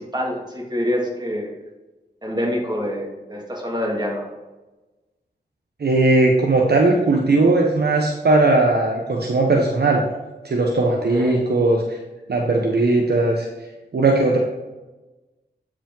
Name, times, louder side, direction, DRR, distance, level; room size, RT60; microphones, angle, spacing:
voice 1, 0.0-1.5 2.2-4.3 11.1-11.5, equal, 25° right, -2 dB, 2.4 m, -26 dB
voice 2, 5.8-10.1 10.4-12.0 12.3-13.5 13.9-14.4, right 2 dB, 70° right, 0 dB, 1.0 m, -18 dB
8.7 x 5.0 x 3.8 m, 1.1 s
wide cardioid pair, 60°, 18 cm